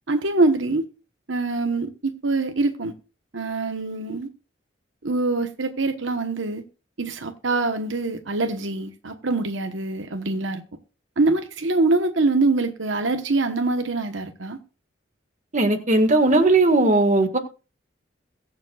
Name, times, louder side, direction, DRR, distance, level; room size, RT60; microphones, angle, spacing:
voice 1, 0.1-0.9 1.3-2.9 3.3-4.3 5.0-6.6 7.0-10.6 11.2-14.6, right 3 dB, 75° right, 1.1 m, -24 dB
voice 2, 15.5-17.4, right 2 dB, 40° right, 1.7 m, -18 dB
22.0 x 7.4 x 2.4 m
head